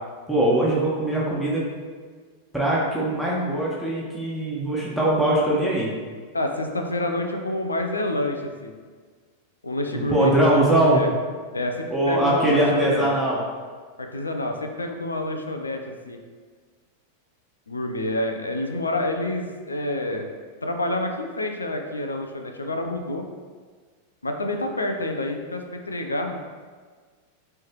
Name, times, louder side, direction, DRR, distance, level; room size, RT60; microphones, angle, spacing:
voice 1, 0.3-1.7 2.5-5.9 9.9-11.0 11.9-13.4, right 1 dB, ahead, -7 dB, 1.4 m, -21 dB
voice 2, 6.3-8.7 9.6-10.6 10.9-11.1 11.5-13.1 14.0-16.2 17.7-20.3 20.6-23.3 24.2-26.4, left 1 dB, 90° left, 4 dB, 0.6 m, -28 dB
9.0 x 3.4 x 3.0 m, 1.6 s
hypercardioid pair, 95°, 0 cm